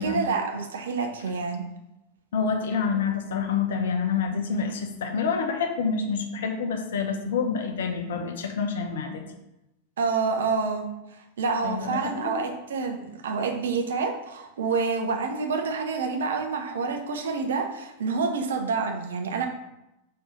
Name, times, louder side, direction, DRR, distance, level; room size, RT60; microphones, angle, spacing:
voice 1, 0.0-1.6 10.0-10.9 11.4-19.5, right 4 dB, 65° right, 4 dB, 0.9 m, -28 dB
voice 2, 2.3-9.2 11.6-12.4, left 5 dB, 60° left, 4 dB, 0.8 m, -27 dB
4.5 x 4.3 x 5.2 m, 0.90 s
figure-of-eight pair, 90°, 0 cm